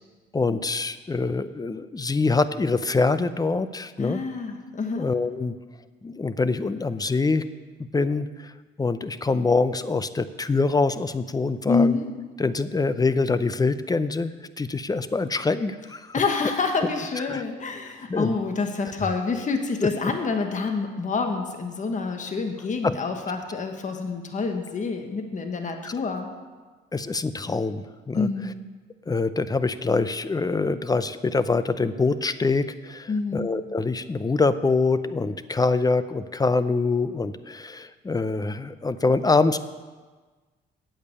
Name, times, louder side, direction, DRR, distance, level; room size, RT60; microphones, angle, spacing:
voice 1, 0.3-4.2 5.0-5.6 6.0-7.5 7.8-8.5 8.8-11.9 12.4-16.1 17.3-17.4 18.1-18.4 19.8-19.9 22.8-23.0 25.8-25.9 26.9-28.3 29.1-39.6, left 3 dB, 20° left, 13 dB, 0.6 m, -24 dB
voice 2, 4.0-5.1 11.6-12.1 16.1-26.3 28.1-28.6 33.1-33.5, left 4 dB, 40° left, 5 dB, 1.4 m, -27 dB
8.9 x 8.4 x 8.4 m, 1.3 s
cardioid pair, 90°, 20 cm